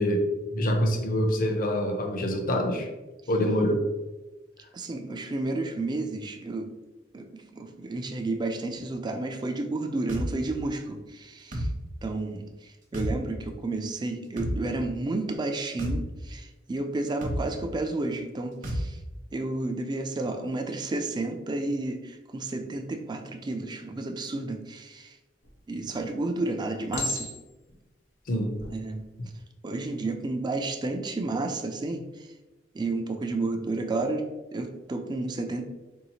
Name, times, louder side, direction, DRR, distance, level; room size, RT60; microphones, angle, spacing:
voice 1, 0.0-2.9 3.3-3.8 28.3-28.5, equal, 50° left, 3 dB, 0.6 m, -25 dB
voice 2, 4.7-6.7 7.1-11.7 12.0-12.5 12.9-19.0 19.3-25.1 25.7-27.3 28.7-29.0 29.6-32.0 32.7-34.3 34.5-35.6, right 2 dB, 25° right, 6 dB, 0.3 m, -31 dB
sound 1, 10.1-10.3 11.5-11.7 12.9-13.1 14.4-14.6 15.8-16.0 17.2-17.4 18.6-18.8, equal, 45° right, 0.8 m, -29 dB
Chink clink, 25.4-25.9 26.9-27.7 28.4-28.7, left 2 dB, 70° left, 1.0 m, -34 dB
3.9 x 2.7 x 2.8 m, 1.1 s
head